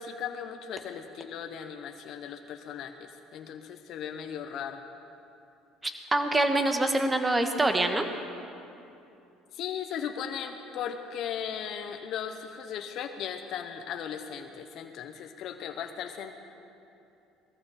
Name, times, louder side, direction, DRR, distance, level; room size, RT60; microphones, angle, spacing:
voice 1, 0.0-4.8 9.5-16.3, left 8 dB, 60° left, 5 dB, 0.9 m, -37 dB
voice 2, 5.8-8.1, right 2 dB, 15° right, 6 dB, 1.4 m, -25 dB
20.5 x 14.0 x 4.3 m, 2.7 s
supercardioid pair, 95°, 0 cm